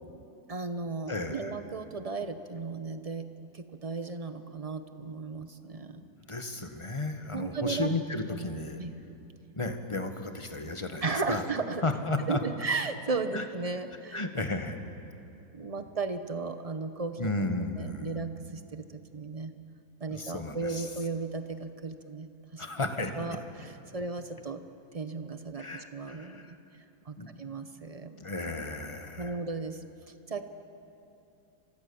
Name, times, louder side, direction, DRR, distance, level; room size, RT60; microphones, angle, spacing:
voice 1, 0.5-3.3 3.5-6.0 7.3-7.9 8.8-8.9 11.0-11.8 12.3-14.3 15.5-17.3 17.8-18.8 19.1-19.5 20.0-22.6 23.1-24.6 24.9-26.6 27.1-28.2 29.2-29.8 30.3-30.5, right 4 dB, 50° right, 9 dB, 0.4 m, -35 dB
voice 2, 1.1-1.5 6.0-8.8 9.6-11.4 11.8-12.4 13.3-13.4 14.1-14.8 17.2-18.1 20.1-20.9 22.6-23.1 25.6-26.6 27.2-27.3 28.2-29.4, left 2 dB, 15° left, 6 dB, 1.4 m, -34 dB
29.0 x 25.0 x 7.1 m, 2.8 s
omnidirectional pair, 2.2 m